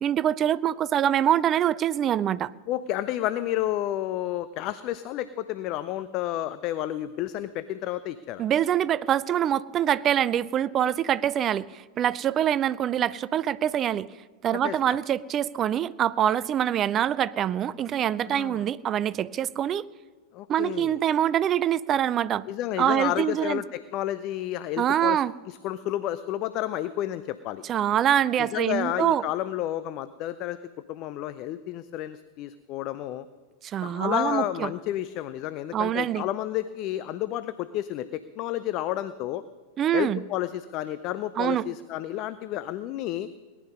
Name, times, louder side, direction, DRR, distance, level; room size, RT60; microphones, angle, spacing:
voice 1, 0.0-2.5 8.4-14.1 14.4-19.9 20.5-22.5 22.8-23.6 24.8-25.3 27.7-29.2 33.6-34.7 35.7-36.2 39.8-40.2 41.4-41.6, right 10 dB, 30° right, 19 dB, 0.4 m, -25 dB
voice 2, 2.7-8.4 14.5-14.8 18.2-18.7 20.3-21.0 22.5-25.2 25.5-27.6 28.4-30.6 30.9-33.3 33.8-39.4 39.9-43.3, left 13 dB, 40° left, 13 dB, 0.5 m, -31 dB
18.5 x 11.0 x 5.3 m, 1.4 s
figure-of-eight pair, 90°, 0 cm